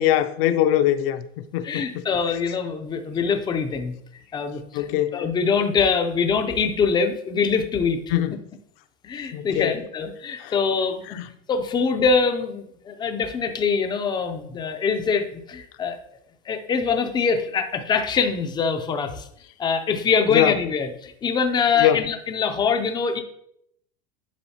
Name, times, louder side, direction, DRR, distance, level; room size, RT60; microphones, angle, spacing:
voice 1, 0.0-2.0 4.7-5.2 8.1-8.4 9.3-9.7 10.4-10.5 11.1-11.3 20.3-20.6 21.8-22.0, left 12 dB, 60° left, 0.6 m, -22 dB
voice 2, 1.6-3.9 4.3-8.0 9.0-11.2 11.5-16.0 16.5-19.3 19.6-23.2, left 5 dB, 15° left, 0.4 m, -24 dB
10.5 x 3.7 x 2.8 m
supercardioid pair, 145°, 33 cm